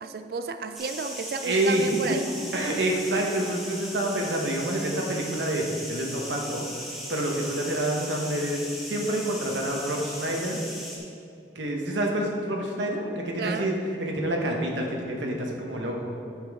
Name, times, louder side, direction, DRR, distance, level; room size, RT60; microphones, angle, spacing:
voice 1, 0.0-2.3 13.4-13.7, right 4 dB, 55° right, 9 dB, 0.3 m, -32 dB
sound 1, 0.7-11.0, equal, ahead, 1.0 m, -38 dB
voice 2, 1.4-1.8 2.5-6.7 7.1-10.6 11.5-16.2, right 1 dB, 85° right, 0 dB, 1.1 m, -28 dB
8.4 x 7.5 x 3.6 m, 2.6 s
head